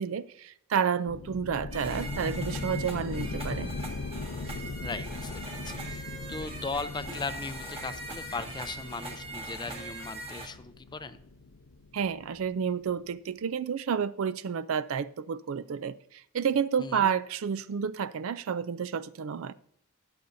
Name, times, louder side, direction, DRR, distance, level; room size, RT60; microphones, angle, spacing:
voice 1, 0.0-3.7 11.9-19.5, right 7 dB, 70° right, 0.4 m, -30 dB
sound 1, 1.1-12.5, left 3 dB, 70° left, 0.6 m, -39 dB
sound 2, 1.7-10.5, right 2 dB, 25° right, 1.5 m, -41 dB
voice 2, 4.8-11.2 16.8-17.1, left 4 dB, 20° left, 0.5 m, -38 dB
20.5 x 6.9 x 2.6 m
head